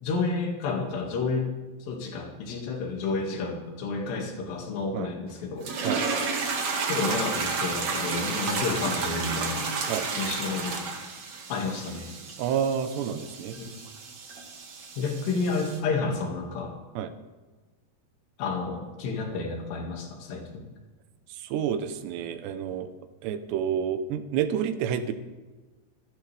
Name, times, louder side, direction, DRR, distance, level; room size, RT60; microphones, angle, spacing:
voice 1, 0.0-1.5 1.8-5.7 6.9-9.7 10.2-10.8 11.5-12.1 13.6-13.7 15.0-16.7 18.4-20.7, left 4 dB, 80° left, 1 dB, 4.3 m, -30 dB
sound 1, 5.6-15.8, right 4 dB, 50° right, 2.7 m, -32 dB
voice 2, 12.4-13.6 17.0-17.1 21.4-22.9 23.2-25.1, right 8 dB, 85° right, 10 dB, 3.1 m, -29 dB
26.0 x 12.5 x 3.4 m, 1.3 s
omnidirectional pair, 4.8 m